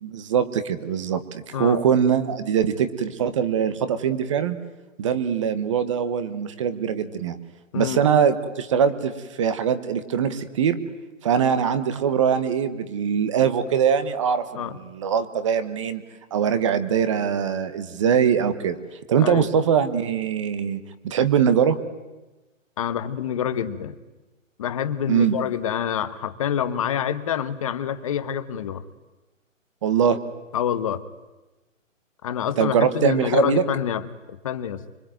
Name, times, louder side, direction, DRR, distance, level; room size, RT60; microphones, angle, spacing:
voice 1, 0.0-4.6 5.0-7.4 7.7-10.8 11.2-16.0 16.3-18.8 19.1-21.8 25.1-25.4 29.8-30.2 32.6-33.6, right 7 dB, 25° right, 12 dB, 1.2 m, -22 dB
voice 2, 19.2-19.5 22.8-24.0 24.6-28.8 30.5-31.0 32.2-34.0 34.4-34.8, left 9 dB, 25° left, 12 dB, 1.2 m, -26 dB
25.5 x 23.5 x 9.2 m, 1.1 s
hypercardioid pair, 165°, 40 cm